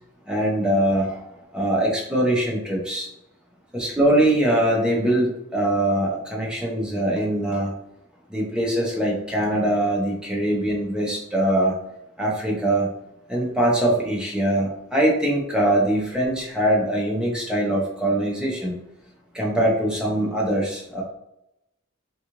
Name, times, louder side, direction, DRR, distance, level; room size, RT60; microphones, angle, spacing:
voice 1, 0.3-1.2 1.5-3.1 3.7-7.7 8.3-11.7 12.2-12.9 13.3-18.7 19.3-21.0, right 1 dB, 5° right, -3 dB, 0.7 m, -22 dB
3.6 x 2.4 x 3.0 m, 0.84 s
head